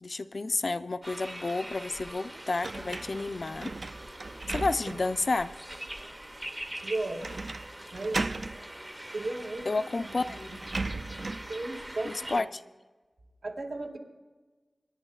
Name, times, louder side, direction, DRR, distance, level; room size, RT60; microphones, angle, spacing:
voice 1, 0.0-3.7 4.5-5.6 9.7-10.6 12.0-12.5, left 3 dB, 60° left, 11 dB, 0.4 m, -31 dB
sound 1, 1.0-12.4, right 1 dB, 15° right, 0.6 m, -43 dB
sound 2, 2.6-5.2 5.7-5.8 7.2-7.7 7.9-8.6 9.6-9.7 10.0-11.5, right 3 dB, 60° right, 0.4 m, -36 dB
voice 2, 6.8-7.4 7.9-8.2 9.1-9.7 11.5-12.5 13.4-14.0, right 2 dB, 90° right, -1 dB, 2.0 m, -35 dB
26.0 x 10.5 x 2.4 m, 1.3 s
wide cardioid pair, 70°, 0 cm